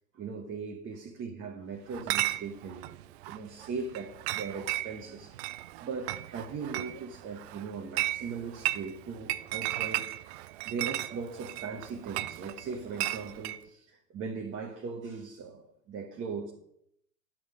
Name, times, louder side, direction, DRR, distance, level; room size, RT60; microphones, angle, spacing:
voice 1, 0.1-3.0 3.2-5.5 5.8-16.5, right 5 dB, 25° right, 1.2 m, -39 dB
Chatter / Chink clink, 1.9-13.6, right 15 dB, 45° right, 0.5 m, -35 dB
10.5 x 6.4 x 5.0 m
hypercardioid pair, 95°, 48 cm